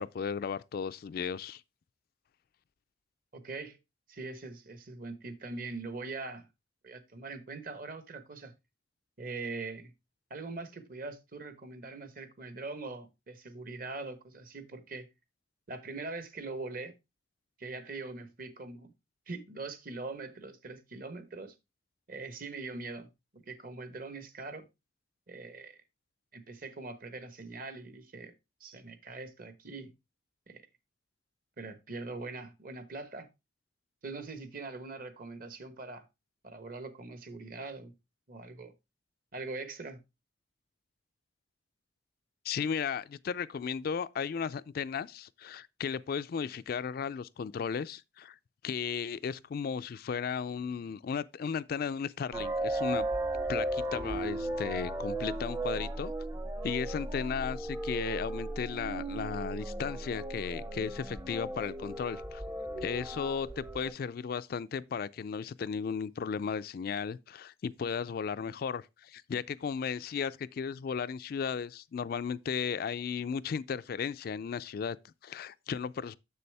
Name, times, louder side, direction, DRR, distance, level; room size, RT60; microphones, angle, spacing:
voice 1, 0.0-1.6 42.4-48.4 48.6-53.1 53.5-56.1 56.6-62.4 62.8-76.2, left 6 dB, 55° left, 0.3 m, -35 dB
voice 2, 3.3-3.8 4.1-6.5 6.8-8.5 9.2-9.9 10.3-15.1 15.7-16.9 17.6-18.9 19.3-21.5 22.1-23.1 23.3-24.7 25.3-25.8 26.3-28.3 28.6-29.9 30.5-30.6 31.6-33.3 34.0-36.0 36.4-37.9 38.3-38.7 39.3-40.0, right 3 dB, 50° right, 1.1 m, -42 dB
sound 1, 52.3-63.9, right 1 dB, 15° right, 0.6 m, -36 dB
7.1 x 6.8 x 3.3 m
head